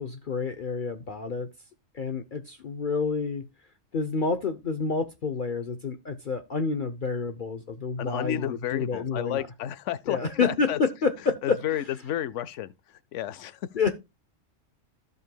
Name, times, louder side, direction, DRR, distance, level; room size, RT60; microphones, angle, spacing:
voice 1, 0.0-1.5 1.9-3.5 3.9-9.5 10.1-11.6 13.7-13.9, left 4 dB, 45° left, 0.8 m, -28 dB
voice 2, 8.0-10.8 11.4-13.7, left 11 dB, 75° left, 1.0 m, -32 dB
15.5 x 5.4 x 2.2 m
omnidirectional pair, 1.3 m